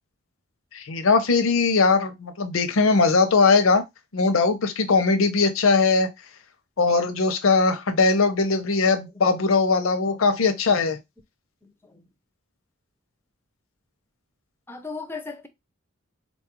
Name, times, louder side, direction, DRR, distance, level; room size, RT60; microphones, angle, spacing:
voice 1, 0.7-3.8 4.1-6.1 6.8-11.0, left 4 dB, 85° left, 0.6 m, -20 dB
voice 2, 10.0-10.6 11.6-12.0 14.7-15.5, left 4 dB, 10° left, 0.5 m, -39 dB
4.2 x 2.3 x 2.9 m
head